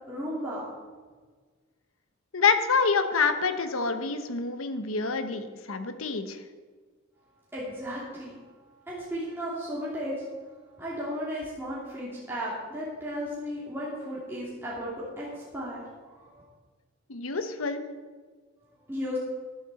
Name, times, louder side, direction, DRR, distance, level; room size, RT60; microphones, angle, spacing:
voice 1, 0.1-0.7 7.5-10.4 10.8-16.4 18.9-19.2, equal, 10° right, -8 dB, 2.8 m, -35 dB
voice 2, 2.3-6.4 17.1-17.8, left 5 dB, 85° left, 9 dB, 1.1 m, -27 dB
13.5 x 11.5 x 4.2 m, 1.5 s
head